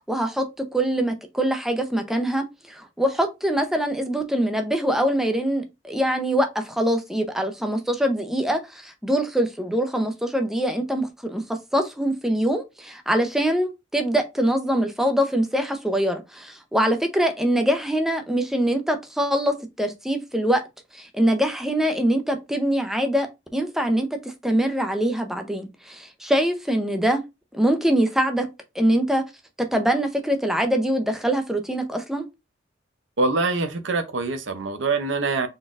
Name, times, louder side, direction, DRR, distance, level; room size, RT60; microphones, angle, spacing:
voice 1, 0.1-11.4 11.7-20.6 20.9-27.2 27.5-28.5 28.7-29.2 29.6-32.3, right 1 dB, ahead, 0.6 m, -23 dB
voice 2, 33.2-35.5, right 3 dB, 80° right, 0.7 m, -24 dB
3.9 x 3.7 x 2.5 m
head